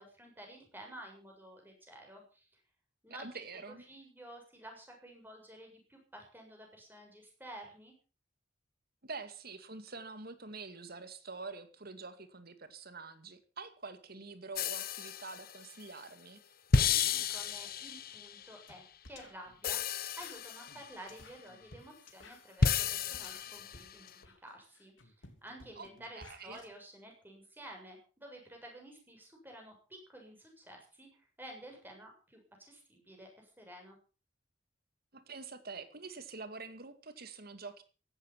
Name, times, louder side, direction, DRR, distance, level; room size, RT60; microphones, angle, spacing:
voice 1, 0.0-2.5 3.0-3.4 3.9-7.9 16.8-25.1 25.4-34.0, right 1 dB, 10° right, 2 dB, 7.1 m, -52 dB
voice 2, 3.2-3.8 9.0-16.4 25.8-25.9 26.2-26.6 35.1-37.8, right 4 dB, 50° right, 10 dB, 2.2 m, -46 dB
sound 1, 14.6-15.6 16.7-18.4 19.6-21.0 22.6-23.9, left 5 dB, 50° left, 1.0 m, -32 dB
sound 2, 18.7-18.8 19.0-26.7, left 2 dB, 75° left, 3.3 m, -56 dB
16.0 x 12.5 x 5.9 m, 0.36 s
head